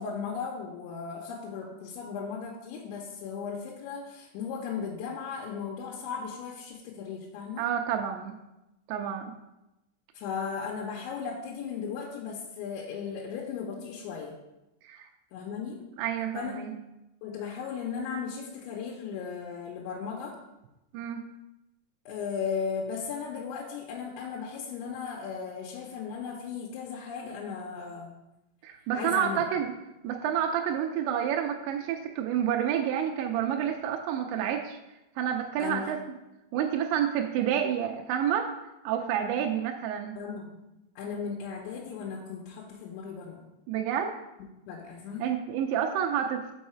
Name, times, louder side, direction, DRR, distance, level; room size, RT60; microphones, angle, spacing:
voice 1, 0.0-7.6 10.1-14.3 15.3-15.8 16.3-16.5 17.2-20.4 22.1-28.1 28.9-29.4 35.6-35.9 40.2-40.6 41.0-43.4 44.7-45.3, left 6 dB, 90° left, -3 dB, 3.1 m, -36 dB
voice 2, 7.6-8.4 8.9-9.3 14.8-15.1 16.0-16.7 20.9-21.3 28.6-29.7 30.0-34.8 35.2-36.0 36.5-38.5 38.8-40.2 43.7-44.1 45.2-46.5, right 9 dB, 85° right, 3 dB, 2.8 m, -29 dB
5.6 x 5.4 x 4.3 m, 0.95 s
omnidirectional pair, 5.1 m